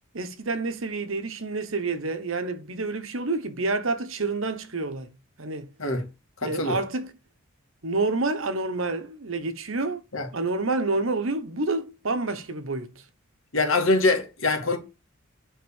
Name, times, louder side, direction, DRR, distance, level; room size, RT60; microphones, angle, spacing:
voice 1, 0.1-5.1 5.4-5.7 6.4-7.1 7.8-10.0 10.3-12.9, right 3 dB, 65° right, 1.1 m, -28 dB
voice 2, 6.4-6.8 10.1-10.3 13.5-14.8, left 3 dB, 65° left, 2.4 m, -23 dB
9.7 x 4.0 x 7.2 m
head